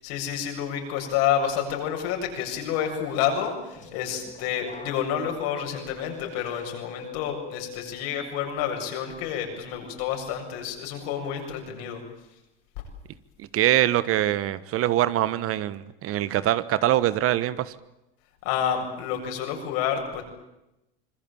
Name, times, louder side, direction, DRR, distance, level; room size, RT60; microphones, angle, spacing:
voice 1, 0.0-12.0 18.4-20.2, left 8 dB, 70° left, 3 dB, 7.6 m, -29 dB
sound 1, 3.5-8.4 8.8-9.2, left 6 dB, 25° left, 5.3 m, -44 dB
voice 2, 13.4-17.7, right 13 dB, 50° right, 16 dB, 1.4 m, -23 dB
26.0 x 21.0 x 9.0 m, 0.91 s
supercardioid pair, 95°, 29 cm